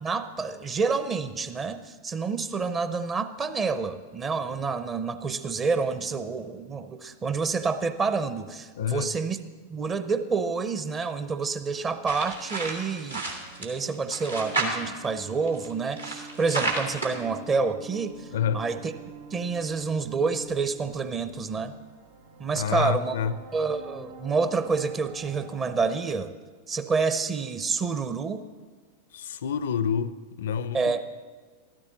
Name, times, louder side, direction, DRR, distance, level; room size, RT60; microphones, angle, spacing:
voice 1, 0.0-9.4 9.7-18.3 18.5-18.9 19.3-21.7 22.4-23.2 23.5-26.3 26.7-28.5 30.7-31.0, right 4 dB, 25° right, 0.7 m, -28 dB
voice 2, 8.8-9.1 18.3-18.7 22.6-23.4 29.1-31.0, left 8 dB, 60° left, 0.5 m, -28 dB
sound 1, 11.7-25.9, right 4 dB, 70° right, 3.3 m, -46 dB
sound 2, 12.1-13.7 13.9-15.1 15.5-17.1, right 2 dB, 85° right, 2.0 m, -31 dB
13.5 x 13.0 x 4.1 m
figure-of-eight pair, 90°, 0 cm